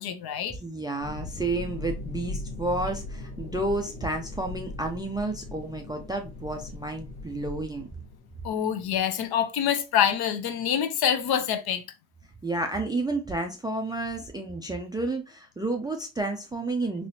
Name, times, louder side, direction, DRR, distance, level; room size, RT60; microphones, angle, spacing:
voice 1, 0.0-0.6 8.4-11.8, left 9 dB, 55° left, 0.6 m, -26 dB
voice 2, 0.5-7.9 12.4-17.1, right 2 dB, 10° right, 0.3 m, -31 dB
sound 1, 1.0-8.5, left 2 dB, 80° left, 1.3 m, -39 dB
3.3 x 2.9 x 2.7 m
cardioid pair, 95°, 47 cm